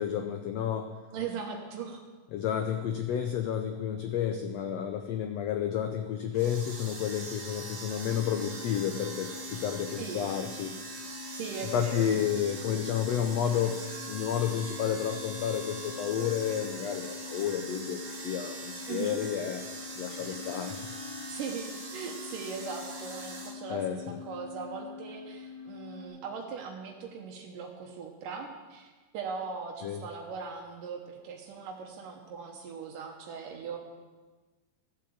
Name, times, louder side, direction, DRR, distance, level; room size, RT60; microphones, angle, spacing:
voice 1, 0.0-0.9 2.3-10.7 11.7-13.8 14.1-19.6 20.0-20.8 23.7-24.2 29.8-30.0, left 9 dB, 85° left, 6 dB, 1.4 m, -31 dB
voice 2, 1.1-2.0 10.0-10.2 11.3-12.2 18.9-19.2 21.3-33.8, right 5 dB, 80° right, 1 dB, 2.6 m, -39 dB
sound 1, 6.3-23.5, right 3 dB, 40° right, 1.1 m, -43 dB
sound 2, 8.0-26.1, left 5 dB, 65° left, 3.6 m, -45 dB
13.5 x 7.7 x 7.1 m, 1.3 s
omnidirectional pair, 3.8 m